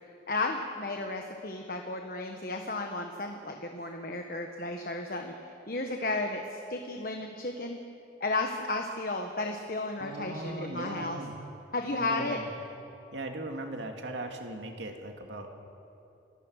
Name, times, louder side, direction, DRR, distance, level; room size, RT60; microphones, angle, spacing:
voice 1, 0.3-5.3 5.7-7.8 8.2-11.2 11.7-12.4, left 2 dB, 50° left, 3 dB, 1.3 m, -33 dB
voice 2, 10.0-11.4 12.0-12.5 13.1-15.5, right 1 dB, 85° right, 3 dB, 2.5 m, -38 dB
29.0 x 15.5 x 6.5 m, 2.7 s
head